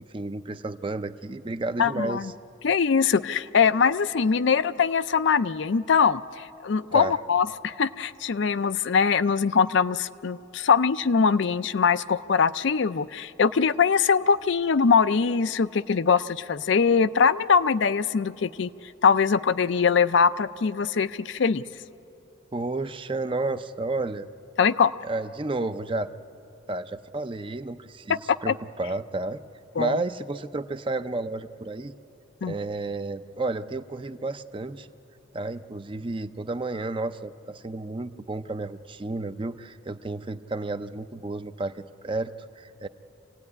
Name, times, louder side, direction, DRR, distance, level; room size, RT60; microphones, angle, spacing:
voice 1, 0.1-2.3 6.9-7.1 22.5-24.2 25.0-26.1 26.7-29.4 29.8-31.9 32.4-34.9 35.3-42.9, right 2 dB, 25° right, 11 dB, 0.5 m, -31 dB
voice 2, 1.8-2.3 2.6-18.7 19.0-21.6 24.6-24.9 28.3-28.5 29.8-30.0 32.4-32.5, left 6 dB, 60° left, 13 dB, 0.5 m, -22 dB
26.5 x 17.0 x 9.7 m, 2.8 s
head